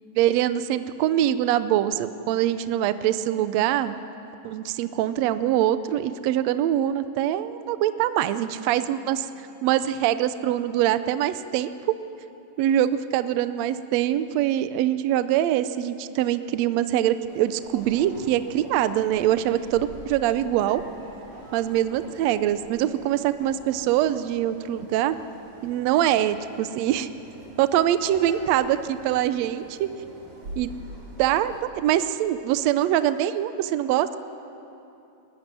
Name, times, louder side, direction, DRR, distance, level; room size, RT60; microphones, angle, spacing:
voice 1, 0.1-4.0 4.4-9.3 9.6-12.0 12.6-20.8 21.5-25.2 25.6-27.1 27.6-29.9 30.6-30.7 31.2-34.2, right 12 dB, 80° right, 12 dB, 1.5 m, -23 dB
sound 1, 17.3-31.6, equal, 40° right, 4.4 m, -45 dB
19.5 x 14.5 x 9.7 m, 2.8 s
omnidirectional pair, 3.8 m